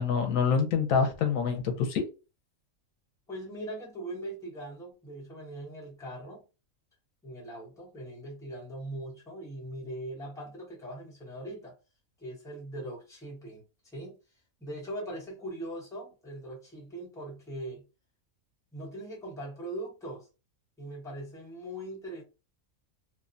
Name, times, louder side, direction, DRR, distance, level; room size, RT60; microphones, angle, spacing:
voice 1, 0.0-2.0, left 6 dB, 80° left, 1.0 m, -26 dB
voice 2, 3.3-6.4 7.2-11.7 12.2-13.6 13.9-14.2 14.6-17.8 18.7-20.3 20.8-22.2, right 1 dB, 5° left, 0.8 m, -40 dB
2.8 x 2.1 x 2.5 m
omnidirectional pair, 1.4 m